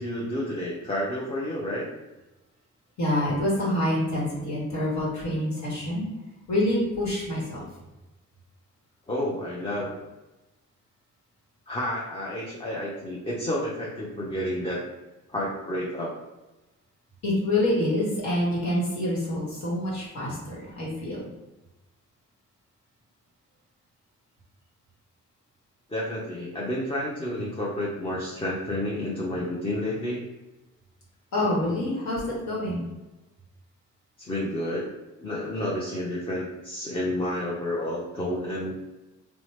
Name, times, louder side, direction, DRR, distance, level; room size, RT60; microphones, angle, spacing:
voice 1, 0.0-1.9 9.1-10.0 11.7-14.8 15.3-16.1 25.9-30.2 34.2-34.9 35.2-38.7, left 1 dB, 20° left, -5 dB, 0.5 m, -30 dB
voice 2, 3.0-6.1 6.5-7.6 17.2-21.3 31.3-32.9, left 1 dB, 65° left, -6 dB, 1.1 m, -26 dB
2.9 x 2.0 x 3.1 m, 1.1 s
cardioid pair, 90°, 30 cm